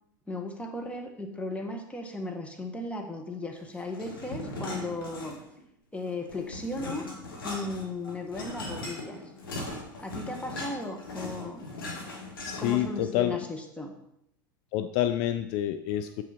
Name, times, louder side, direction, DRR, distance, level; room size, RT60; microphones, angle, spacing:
voice 1, 0.3-5.4 5.9-7.1 7.4-9.2 10.0-11.7 12.6-13.9, left 2 dB, 10° left, 3 dB, 1.6 m, -36 dB
sound 1, 3.9-5.6 6.0-13.0, left 2 dB, 85° left, 2.1 m, -39 dB
voice 2, 12.4-13.4 14.7-16.2, left 12 dB, 55° left, 11 dB, 0.5 m, -28 dB
7.6 x 6.3 x 4.4 m, 0.77 s
hypercardioid pair, 90°, 12 cm